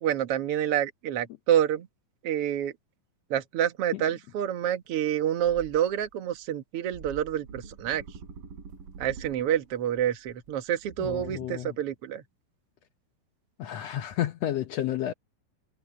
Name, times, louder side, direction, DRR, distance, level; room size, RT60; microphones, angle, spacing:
voice 1, 0.0-1.9 2.2-2.7 3.3-8.0 9.0-12.2, right 10 dB, 55° right, 1.9 m, -28 dB
sound 1, 4.9-5.1 5.4-6.5 6.9-7.5 7.9-8.9 9.4-9.5 9.7-10.8, right 2 dB, 30° right, 6.5 m, -50 dB
sound 2, 7.4-9.9 10.8-11.8, right 5 dB, 90° right, 5.7 m, -45 dB
voice 2, 11.0-11.8 13.6-15.1, left 12 dB, 75° left, 1.5 m, -31 dB
omnidirectional pair, 4.0 m